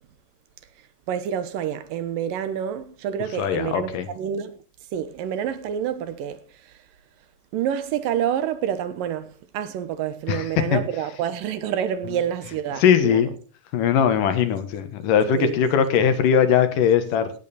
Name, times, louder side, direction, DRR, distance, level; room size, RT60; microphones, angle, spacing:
voice 1, 1.1-4.6 4.9-6.8 7.5-13.3 15.4-15.6, right 9 dB, 85° right, 2.9 m, -28 dB
voice 2, 3.4-4.1 10.3-10.5 10.7-10.8 12.8-13.3 13.7-17.3, left 8 dB, 80° left, 3.0 m, -20 dB
16.5 x 8.9 x 4.2 m
omnidirectional pair, 3.8 m